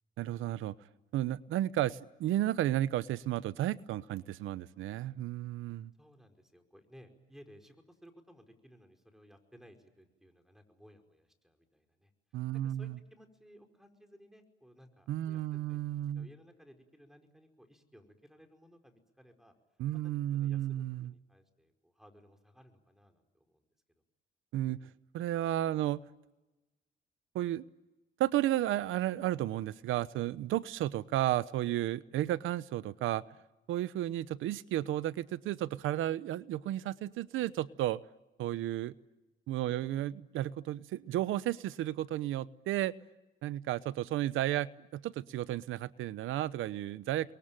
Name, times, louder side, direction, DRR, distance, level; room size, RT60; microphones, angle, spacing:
voice 1, 0.2-0.7 1.1-5.9 12.3-12.9 15.1-16.3 19.8-21.1 24.5-24.9 25.1-26.0 27.3-27.6 28.2-33.2 33.7-38.0 38.4-38.9 39.5-42.9 43.4-47.3, right 13 dB, 90° right, 17 dB, 1.0 m, -33 dB
voice 2, 6.0-15.8 16.1-19.5 19.9-23.7 39.6-39.9, equal, ahead, 5 dB, 5.0 m, -59 dB
29.0 x 22.5 x 9.0 m, 1.1 s
cardioid pair, 90°, 20 cm